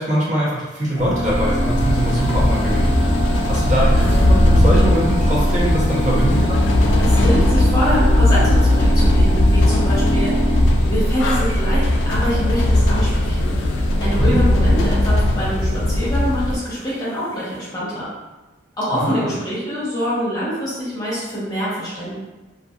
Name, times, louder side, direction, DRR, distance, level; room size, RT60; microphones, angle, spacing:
voice 1, 0.0-2.9 3.5-6.6 14.2-14.4 18.9-19.3, equal, 40° right, -6 dB, 0.8 m, -22 dB
sound 1, 0.9-10.6, equal, 5° right, 1.0 m, -25 dB
sound 2, 1.3-16.6, left 1 dB, 75° left, 0.3 m, -17 dB
voice 2, 7.0-18.1 18.8-22.1, equal, 20° left, -10 dB, 0.9 m, -25 dB
2.5 x 2.4 x 2.4 m, 1.1 s
head